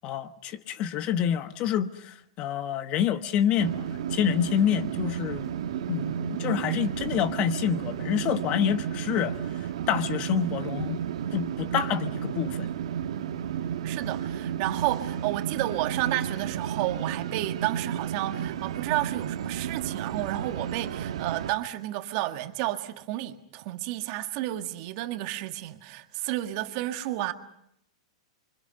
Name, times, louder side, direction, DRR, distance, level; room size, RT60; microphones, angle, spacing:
voice 1, 0.0-5.6 5.9-9.4 9.9-11.0 11.3-12.7, left 9 dB, 35° left, 1.1 m, -27 dB
sound 1, 3.6-21.5, right 9 dB, 75° right, 1.8 m, -32 dB
voice 2, 13.8-27.3, right 15 dB, 45° right, 1.7 m, -31 dB
27.5 x 24.5 x 5.4 m
hypercardioid pair, 145°, 3 cm